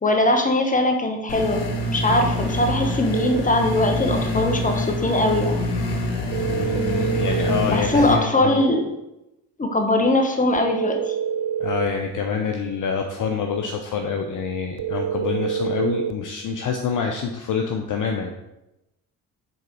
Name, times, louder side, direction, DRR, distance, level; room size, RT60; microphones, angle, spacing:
voice 1, 0.0-5.6 7.7-8.9 9.6-11.1, left 1 dB, 15° left, 4 dB, 1.1 m, -21 dB
sound 1, 1.3-8.1, left 1 dB, 60° left, 1.3 m, -26 dB
sound 2, 3.1-3.5 6.3-7.7 10.5-11.9 14.8-16.2, right 9 dB, 40° right, 0.5 m, -26 dB
voice 2, 6.4-8.6 11.6-18.3, left 6 dB, 40° left, 4 dB, 0.7 m, -26 dB
7.5 x 3.6 x 4.6 m, 0.93 s
figure-of-eight pair, 45°, 49 cm